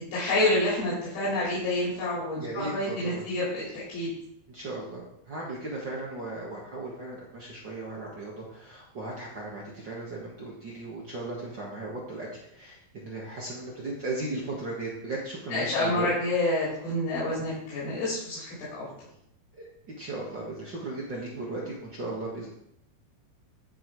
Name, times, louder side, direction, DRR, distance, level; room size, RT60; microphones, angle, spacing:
voice 1, 0.1-4.1 15.5-18.9, left 1 dB, 75° left, -8 dB, 5.0 m, -28 dB
voice 2, 2.4-3.2 4.5-12.3 12.6-16.1 19.6-19.7 20.0-22.5, right 2 dB, 45° right, -4 dB, 1.5 m, -36 dB
13.0 x 4.9 x 4.8 m, 0.77 s
omnidirectional pair, 4.3 m